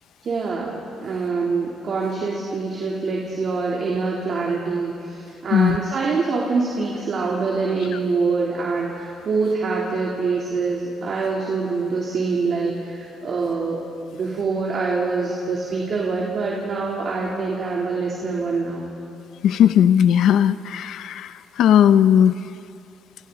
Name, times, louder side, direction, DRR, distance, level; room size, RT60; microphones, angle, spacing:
voice 1, 0.2-13.8 14.1-18.9, right 4 dB, 55° right, -3 dB, 3.4 m, -25 dB
voice 2, 19.4-22.4, left 9 dB, 80° left, 12 dB, 0.8 m, -17 dB
29.5 x 27.5 x 4.2 m, 2.5 s
cardioid pair, 90°, 0 cm